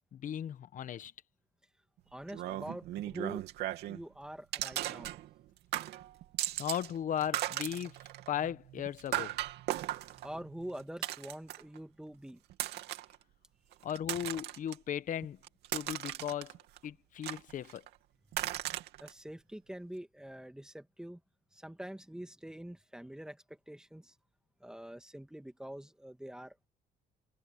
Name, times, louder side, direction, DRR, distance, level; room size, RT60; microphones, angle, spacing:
voice 1, 0.1-1.1 6.6-7.9 8.3-9.4 13.8-15.4 15.7-16.5 16.8-17.8, left 9 dB, 50° left, 1.1 m, -36 dB
voice 2, 2.1-3.5 3.9-5.2 10.2-12.4 19.0-21.2 21.5-24.2 24.6-26.7, right 1 dB, 5° right, 2.2 m, -45 dB
sound 1, 2.3-4.0 4.5-5.5 5.7-6.9 7.2-11.8 12.5-13.1 13.7-14.7 15.2-16.8 17.2-17.9 18.3-19.1, right 14 dB, 80° right, 2.8 m, -37 dB
cardioid pair, 110°, 17 cm